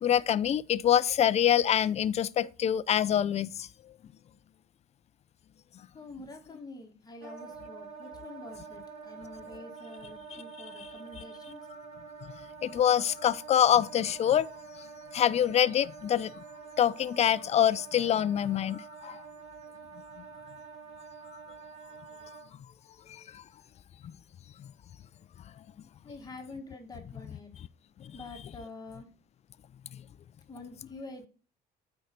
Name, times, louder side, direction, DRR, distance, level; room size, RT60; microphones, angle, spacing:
voice 1, 0.0-3.7 10.3-10.4 10.8-10.9 12.6-14.5 15.1-16.3 16.8-19.2, left 10 dB, 40° left, 0.5 m, -25 dB
voice 2, 5.9-11.6 26.0-27.5 28.1-29.1 30.5-31.3, left 2 dB, 25° left, 1.6 m, -46 dB
Wind instrument woodwind instrument, 7.2-22.5, right 5 dB, 85° right, 2.7 m, -47 dB
9.2 x 4.6 x 5.1 m
cardioid pair, 110°, 17 cm